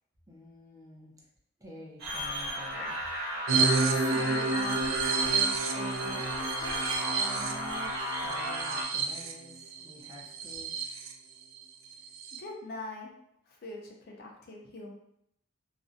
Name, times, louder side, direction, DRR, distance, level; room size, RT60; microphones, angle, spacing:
voice 1, 0.3-1.2 1.6-3.0 7.0-10.7, equal, 15° right, -4 dB, 0.5 m, -49 dB
sound 1, 2.0-8.8, equal, 60° right, 1.1 m, -34 dB
sound 2, 3.5-11.1 11.5-11.6 11.9-12.4, right 4 dB, 80° right, 0.3 m, -30 dB
voice 2, 3.9-4.9 5.3-6.3 6.6-6.8 12.3-13.1 13.5-14.9, left 2 dB, 55° left, 0 dB, 0.5 m, -43 dB
2.4 x 2.1 x 2.5 m, 0.76 s
head